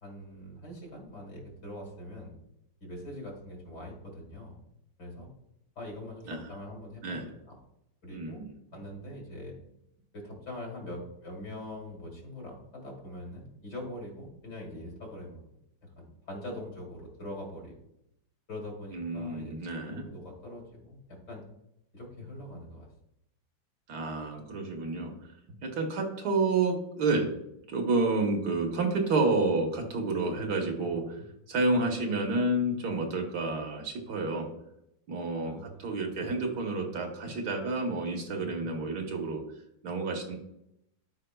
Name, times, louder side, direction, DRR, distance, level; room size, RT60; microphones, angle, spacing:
voice 1, 0.0-2.3 2.8-4.6 5.0-5.3 5.8-7.6 8.0-8.4 8.7-9.5 10.1-15.6 16.0-17.8 18.5-19.5 19.9-21.4 21.9-22.9 35.4-35.9, left 1 dB, 65° left, -1 dB, 2.7 m, -43 dB
voice 2, 8.1-8.5 18.9-20.0 23.9-25.1 25.6-27.3 27.7-34.5 35.1-39.4 39.8-40.4, right 3 dB, 60° right, 3 dB, 1.4 m, -30 dB
13.0 x 4.7 x 2.2 m, 0.81 s
omnidirectional pair, 2.0 m